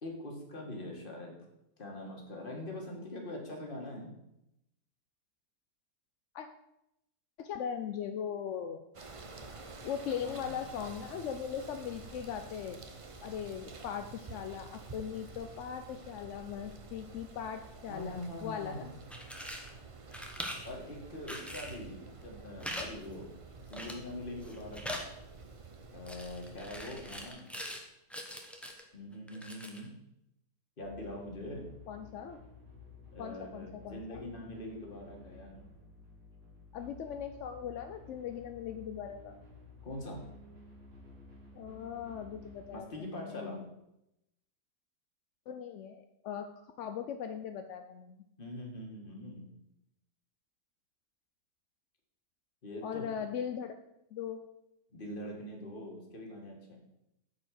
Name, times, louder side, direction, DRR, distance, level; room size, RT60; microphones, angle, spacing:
voice 1, 0.0-1.3 1.8-4.1 10.2-10.5 17.9-18.9 20.6-23.3 23.7-25.0 25.9-27.5 28.9-29.9 30.8-31.6 33.1-35.6 39.8-40.2 42.7-43.6 48.4-49.5 52.6-53.1 54.9-56.8, left 1 dB, 35° left, 0 dB, 1.8 m, -43 dB
voice 2, 7.4-8.9 9.8-12.8 13.2-18.9 31.9-32.4 33.2-34.2 36.7-39.4 41.5-43.7 45.5-48.2 52.8-53.7 54.1-54.4, left 8 dB, 65° left, 7 dB, 0.7 m, -39 dB
sound 1, 8.9-27.3, right 4 dB, 45° right, 0.4 m, -50 dB
sound 2, 19.1-19.7 20.1-20.7 21.3-21.8 22.6-22.9 23.1-23.2 23.7-24.1 24.4-25.1 26.1-27.8 28.1-28.8 29.3-29.9, equal, ahead, 0.7 m, -42 dB
sound 3, 30.8-42.8, left 3 dB, 80° right, 2.8 m, -53 dB
8.3 x 4.9 x 6.4 m, 0.85 s
omnidirectional pair, 1.7 m